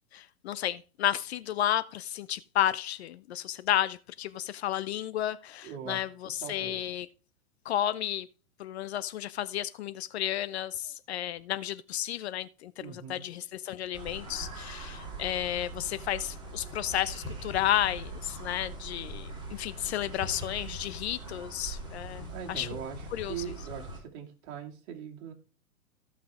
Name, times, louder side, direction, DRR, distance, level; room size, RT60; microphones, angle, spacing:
voice 1, 0.1-7.1 7.7-8.3 8.6-22.7 23.1-23.4, left 12 dB, 45° left, 0.6 m, -32 dB
voice 2, 5.6-6.1 6.4-6.8 12.8-13.2 22.3-25.3, right 8 dB, 45° right, 2.6 m, -41 dB
sound 1, 13.9-24.0, right 2 dB, 10° right, 3.9 m, -41 dB
15.5 x 5.8 x 3.6 m
hypercardioid pair, 115°, 44 cm